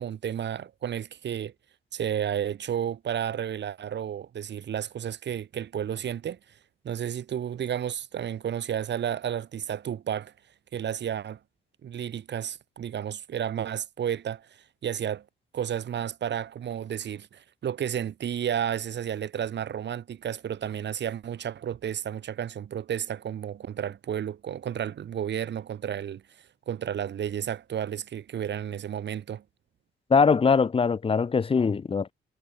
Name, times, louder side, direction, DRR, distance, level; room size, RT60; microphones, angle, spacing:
voice 1, 0.0-1.5 1.9-6.4 6.8-10.3 10.7-11.4 11.8-15.2 15.5-26.2 26.7-29.4, right 9 dB, 60° right, 5.2 m, -32 dB
voice 2, 30.1-32.1, left 5 dB, 30° left, 1.0 m, -22 dB
cardioid pair, 90°, 20 cm